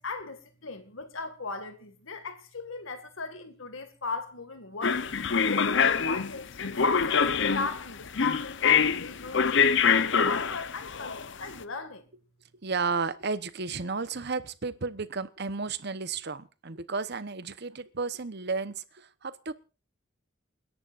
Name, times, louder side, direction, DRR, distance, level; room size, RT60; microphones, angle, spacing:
voice 1, 0.0-5.1 5.5-12.1, left 4 dB, 80° left, 2.1 m, -37 dB
sound 1, 4.8-11.5, left 6 dB, 60° left, 0.8 m, -25 dB
voice 2, 12.6-19.5, right 4 dB, 55° right, 1.0 m, -33 dB
29.0 x 11.0 x 2.5 m
head